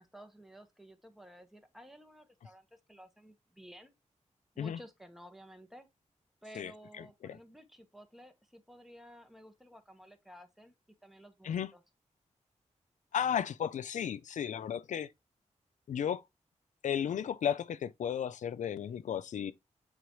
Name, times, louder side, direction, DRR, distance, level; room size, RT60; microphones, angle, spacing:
voice 1, 0.0-3.9 4.5-5.9 6.4-10.7 11.0-11.8, equal, ahead, 1.3 m, -54 dB
voice 2, 13.1-15.1 15.9-16.2 16.8-19.5, left 8 dB, 75° left, 0.4 m, -34 dB
8.2 x 3.9 x 3.1 m
cardioid pair, 80°, 13 cm